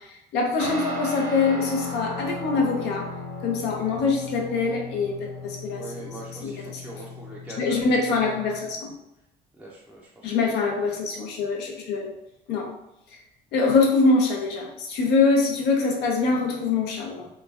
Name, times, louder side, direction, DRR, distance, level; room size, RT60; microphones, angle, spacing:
voice 1, 0.0-3.1 3.4-6.1 6.4-6.8 7.6-8.9 10.2-12.1 12.5-12.7 13.1-13.2 13.5-17.3, left 4 dB, 85° left, 1 dB, 0.6 m, -24 dB
Guitar, 0.6-8.7, left 2 dB, 55° right, 0.8 m, -36 dB
voice 2, 5.7-8.2 9.6-10.8, right 1 dB, 5° right, -5 dB, 0.4 m, -43 dB
3.0 x 2.2 x 2.4 m, 0.85 s
cardioid pair, 110°, 17 cm